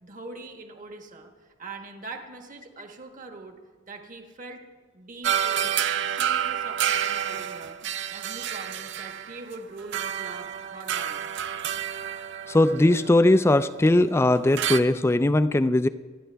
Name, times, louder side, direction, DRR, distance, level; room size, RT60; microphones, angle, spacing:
voice 1, 0.0-3.6 3.9-4.7 4.9-5.8 6.0-7.8 8.1-11.5, right 3 dB, 40° right, 4 dB, 1.3 m, -43 dB
sound 1, 5.2-13.9 14.6-14.8, right 9 dB, 60° right, 0.5 m, -29 dB
voice 2, 12.5-15.9, left 1 dB, 15° left, 13 dB, 0.3 m, -20 dB
26.0 x 10.0 x 3.4 m, 1.4 s
head